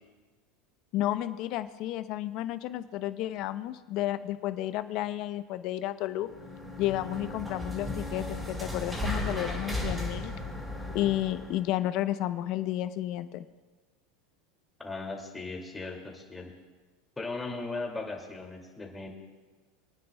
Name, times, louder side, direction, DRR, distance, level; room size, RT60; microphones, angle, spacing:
voice 1, 0.9-6.3 6.8-10.3 10.9-13.4, left 13 dB, 55° left, 11 dB, 0.8 m, -32 dB
sound 1, 6.2-11.7, left 1 dB, 10° right, 4.1 m, -35 dB
voice 2, 14.8-16.5 17.2-19.1, left 3 dB, 10° left, 0 dB, 2.5 m, -37 dB
27.5 x 9.5 x 2.3 m, 1.3 s
hypercardioid pair, 105°, 0 cm